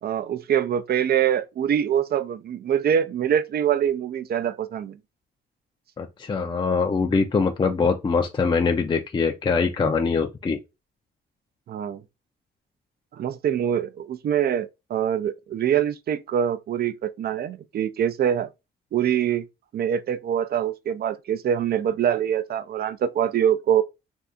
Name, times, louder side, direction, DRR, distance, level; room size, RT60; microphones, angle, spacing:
voice 1, 0.0-5.0 6.4-6.5 11.7-12.0 13.1-18.5 18.9-19.5 19.7-23.8, right 9 dB, 50° right, 0.5 m, -24 dB
voice 2, 6.0-10.6, left 4 dB, 25° left, 0.5 m, -23 dB
2.7 x 2.3 x 3.6 m
cardioid pair, 90°, 20 cm